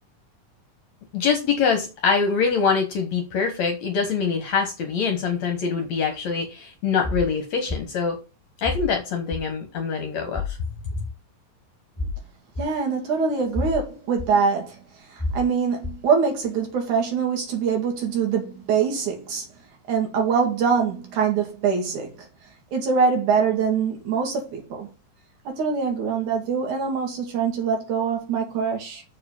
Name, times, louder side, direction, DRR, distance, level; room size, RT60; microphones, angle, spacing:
voice 1, 1.1-8.2 8.6-10.4, left 5 dB, 65° left, 2.3 m, -24 dB
sound 1, 7.0-7.3 7.7-7.8 8.6-8.9 9.3-9.4 10.3-10.6 10.9-11.0 12.0-12.2 12.6-12.7 13.6-13.8 14.2-14.3 15.2-15.4 15.8-16.0, left 3 dB, 10° left, 2.2 m, -28 dB
voice 2, 12.6-14.8 15.1-19.5 19.9-22.1 22.7-24.9 25.5-29.0, right 6 dB, 65° right, 3.6 m, -24 dB
7.0 x 4.8 x 7.0 m
omnidirectional pair, 3.8 m